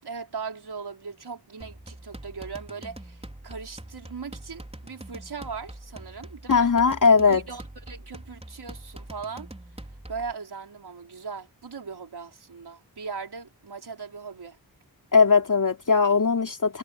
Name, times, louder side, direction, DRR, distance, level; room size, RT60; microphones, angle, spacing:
voice 1, 0.0-6.7 7.3-9.5 10.1-14.6, right 5 dB, 80° right, 5.2 m, -39 dB
sound 1, 1.6-10.3, right 1 dB, 15° right, 4.8 m, -43 dB
voice 2, 6.5-7.4 15.1-16.8, left 5 dB, 55° left, 3.5 m, -19 dB
wide cardioid pair, 90°, 38 cm